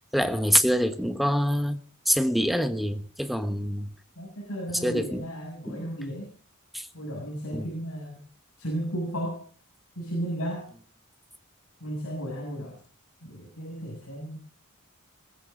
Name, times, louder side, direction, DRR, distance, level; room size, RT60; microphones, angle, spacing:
voice 1, 0.1-3.9 4.8-5.2 5.7-5.8 6.7-6.9 7.5-7.7, equal, ahead, 1.2 m, -25 dB
voice 2, 4.1-6.3 6.9-8.2 8.6-9.4 9.9-10.7 11.8-12.8 13.2-14.4, right 1 dB, 70° left, 6.9 m, -34 dB
20.5 x 15.5 x 3.9 m
head